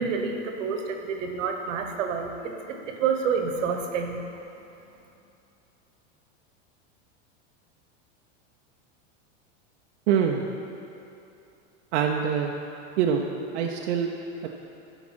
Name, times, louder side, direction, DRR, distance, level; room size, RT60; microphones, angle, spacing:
voice 1, 0.0-4.2, right 6 dB, 85° right, 4 dB, 1.3 m, -28 dB
voice 2, 10.1-10.4 11.9-12.5 13.0-13.2 13.5-14.1 14.4-14.5, right 8 dB, 65° right, 1 dB, 0.7 m, -24 dB
11.5 x 5.0 x 6.2 m, 2.8 s
supercardioid pair, 145°, 37 cm